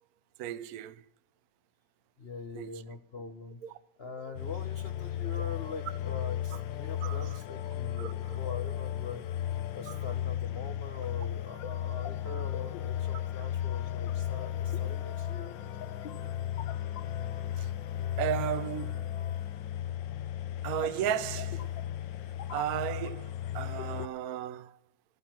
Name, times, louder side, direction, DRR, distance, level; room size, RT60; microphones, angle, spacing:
voice 1, 0.4-1.0 2.5-2.7 3.6-3.7 7.0-7.3 8.0-8.4 9.9-10.0 17.6-17.7 18.2-19.1 20.6-21.6 22.5-24.7, right 10 dB, 60° right, 1.1 m, -34 dB
voice 2, 2.2-3.6 4.0-9.4 9.7-15.6, left 4 dB, 45° left, 1.0 m, -43 dB
sound 1, 4.3-24.1, left 11 dB, 90° left, 1.5 m, -35 dB
14.0 x 13.5 x 6.0 m
omnidirectional pair, 2.0 m